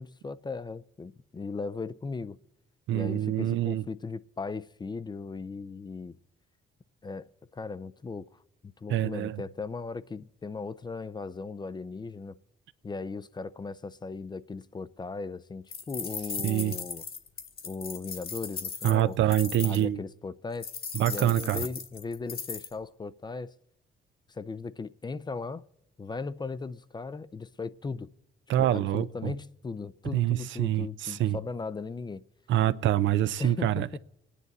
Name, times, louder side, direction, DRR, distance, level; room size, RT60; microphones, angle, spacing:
voice 1, 0.0-2.4 2.9-6.2 7.0-12.3 12.8-17.0 17.6-19.2 19.6-20.7 21.1-23.5 24.3-25.6 26.0-28.1 28.6-32.2 33.4-34.0, left 4 dB, 20° left, 0.4 m, -37 dB
voice 2, 2.9-3.8 8.9-9.4 16.4-16.7 18.8-20.0 20.9-21.7 28.5-29.3 30.1-31.4 32.5-34.0, right 12 dB, 75° right, 0.5 m, -26 dB
sound 1, 15.7-19.8 20.6-22.7, left 5 dB, 50° left, 1.6 m, -37 dB
28.0 x 10.0 x 4.0 m
cardioid pair, 90°, 20 cm